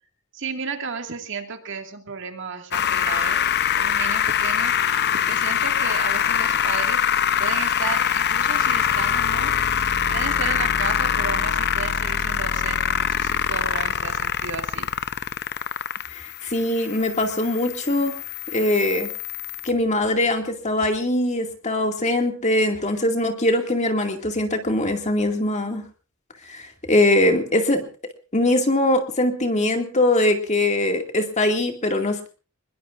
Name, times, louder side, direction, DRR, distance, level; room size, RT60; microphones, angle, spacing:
voice 1, 0.3-4.8 5.1-7.0 7.4-9.6 10.1-14.9, right 5 dB, 55° right, 5 dB, 2.2 m, -33 dB
sound 1, 2.7-19.7, left 8 dB, 50° left, 0.7 m, -24 dB
voice 2, 16.1-18.2 18.5-19.1 19.6-25.8 26.4-27.8 28.3-32.3, left 1 dB, 30° left, 4 dB, 2.3 m, -22 dB
24.5 x 21.5 x 2.6 m, 0.36 s
head